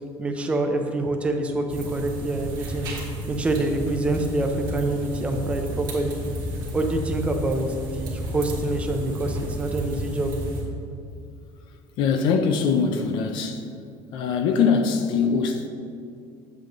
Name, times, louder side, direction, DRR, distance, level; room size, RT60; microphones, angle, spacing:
voice 1, 0.2-2.9 3.3-6.2 6.7-10.3, right 2 dB, 10° right, 0.5 m, -26 dB
sound 1, 1.7-10.6, right 1 dB, 45° right, 1.8 m, -32 dB
voice 2, 12.0-13.6 14.1-15.7, left 5 dB, 50° left, 0.5 m, -22 dB
7.6 x 7.5 x 3.0 m
cardioid pair, 175°, 10 cm